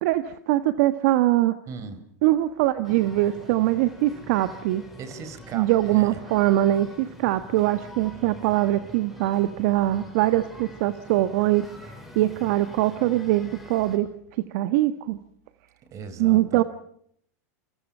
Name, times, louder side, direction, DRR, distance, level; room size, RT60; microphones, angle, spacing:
voice 1, 0.0-1.6 2.2-4.8 5.5-14.1 14.5-15.2 16.2-16.6, right 15 dB, 60° right, 11 dB, 1.5 m, -22 dB
voice 2, 1.7-2.0 5.0-6.2 15.9-16.6, right 5 dB, 35° right, 13 dB, 4.7 m, -38 dB
sound 1, 2.8-14.0, left 1 dB, ahead, 7.0 m, -45 dB
28.0 x 26.5 x 5.6 m, 0.67 s
hypercardioid pair, 125°, 9 cm